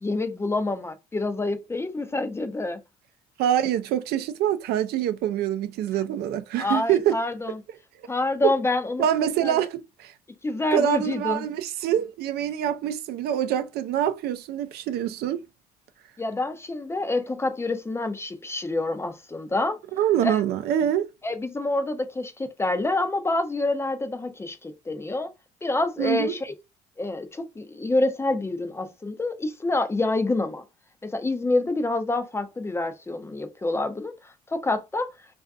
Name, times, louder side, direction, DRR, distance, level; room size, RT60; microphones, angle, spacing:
voice 1, 0.0-2.8 6.6-7.6 8.1-9.6 10.4-11.4 16.2-19.8 20.2-20.4 21.2-25.3 25.6-26.5 27.0-30.6 31.0-35.1, left 2 dB, 15° left, 0.4 m, -27 dB
voice 2, 3.4-7.2 9.0-10.1 10.7-15.5 19.9-21.1 26.0-26.4, right 10 dB, 70° right, 0.4 m, -25 dB
2.5 x 2.4 x 2.3 m
cardioid pair, 110°, 17 cm